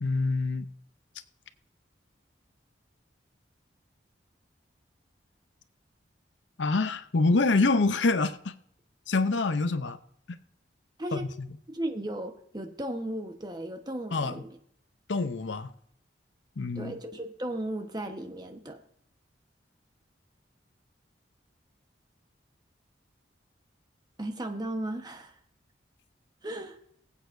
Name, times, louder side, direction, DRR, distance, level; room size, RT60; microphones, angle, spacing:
voice 1, 0.0-0.7 6.6-8.5 9.1-10.0 11.1-11.5 14.1-14.4 15.1-15.7 16.6-16.9, left 3 dB, 80° left, 0.7 m, -26 dB
voice 2, 11.7-14.5 16.8-18.8 24.2-25.3 26.4-26.8, right 1 dB, 20° right, 1.1 m, -35 dB
20.5 x 8.4 x 2.6 m
head